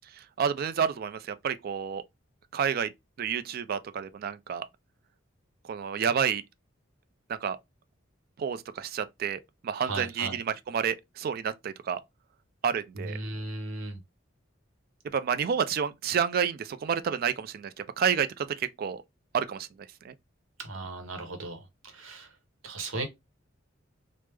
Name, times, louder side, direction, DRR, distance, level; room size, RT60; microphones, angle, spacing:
voice 1, 0.1-2.0 2.5-2.9 3.2-4.7 5.7-6.4 7.3-7.6 8.4-12.0 12.6-13.2 15.1-19.0 19.3-19.7 20.0-20.1, right 7 dB, 50° right, 0.3 m, -29 dB
voice 2, 9.8-10.4 13.0-14.0 20.6-22.3 22.6-23.0, right 2 dB, 80° right, 0.8 m, -36 dB
3.3 x 2.0 x 3.2 m
head